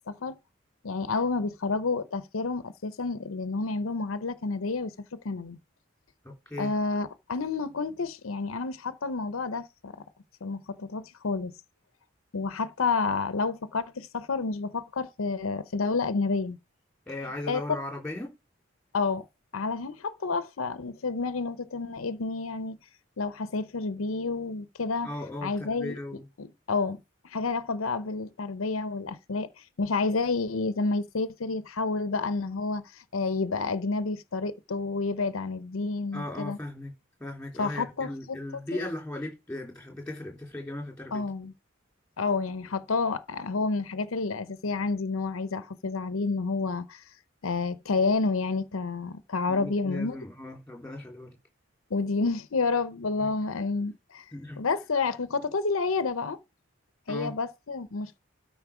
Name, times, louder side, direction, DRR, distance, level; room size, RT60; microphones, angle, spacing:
voice 1, 0.1-0.4 0.8-5.6 6.6-10.0 10.4-11.5 12.3-16.6 17.5-17.6 18.9-19.2 19.5-22.8 23.2-25.1 25.4-26.0 26.4-36.6 37.6-38.4 38.7-38.9 41.1-41.5 42.2-47.0 47.4-50.2 51.9-54.2 54.6-56.4 57.1-58.2, left 4 dB, 90° left, 0.7 m, -30 dB
voice 2, 6.2-6.7 17.1-18.3 25.0-26.3 36.1-36.9 37.2-41.3 49.5-51.4 53.2-53.3 54.3-54.6 57.1-57.3, left 1 dB, 5° left, 3.5 m, -37 dB
13.0 x 5.3 x 5.0 m
head